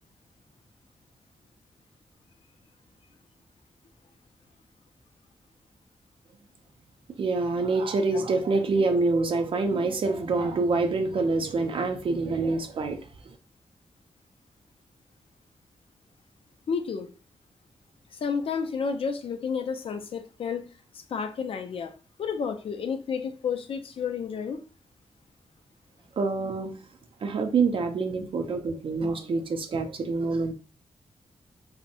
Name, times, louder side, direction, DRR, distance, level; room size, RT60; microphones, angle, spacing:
voice 1, 7.2-13.0 13.3-13.4 26.2-26.8 27.2-30.5, right 3 dB, 55° right, 5 dB, 0.4 m, -26 dB
voice 2, 16.7-17.1 18.1-20.7 20.9-21.9 22.2-24.6, left 6 dB, 55° left, 7 dB, 0.4 m, -31 dB
2.5 x 2.0 x 2.7 m, 0.37 s
wide cardioid pair, 155°, 11 cm